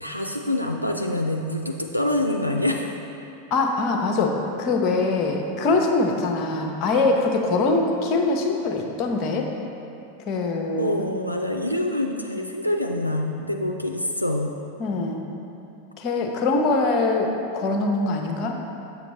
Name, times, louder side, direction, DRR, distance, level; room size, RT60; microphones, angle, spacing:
voice 1, 0.0-3.0 10.7-14.6, left 1 dB, 90° left, 1 dB, 0.3 m, -26 dB
voice 2, 3.5-9.5 10.3-11.0 14.8-15.2 16.0-18.7, left 3 dB, 35° left, 3 dB, 0.7 m, -23 dB
6.9 x 6.9 x 3.1 m, 2.7 s
figure-of-eight pair, 90°, 0 cm